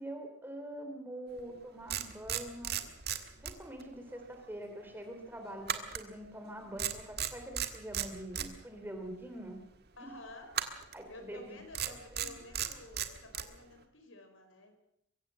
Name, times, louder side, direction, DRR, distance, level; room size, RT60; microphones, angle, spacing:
voice 1, 0.0-2.8 3.4-9.6 10.0-10.1 10.9-11.6 12.2-12.4, right 1 dB, 10° right, 5 dB, 3.3 m, -44 dB
sound 1, 1.4-1.5 1.9-4.4 5.7-6.5 6.8-8.5 10.5-11.0 11.7-13.5, right 9 dB, 50° right, 1.7 m, -35 dB
voice 2, 10.0-14.8, left 2 dB, 75° left, 6 dB, 4.9 m, -52 dB
23.5 x 15.5 x 7.6 m, 0.75 s
head